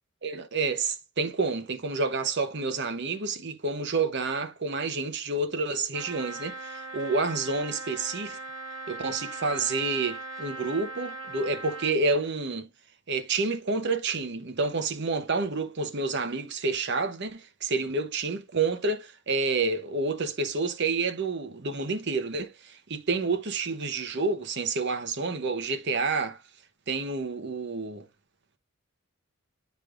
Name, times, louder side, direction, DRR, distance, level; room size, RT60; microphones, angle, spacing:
voice 1, 0.2-8.4 8.9-12.7 13.1-26.4 26.9-28.1, right 3 dB, 55° right, 0.9 m, -29 dB
Trumpet, 5.9-12.0, right 2 dB, 75° right, 2.4 m, -39 dB
9.3 x 5.1 x 2.4 m
head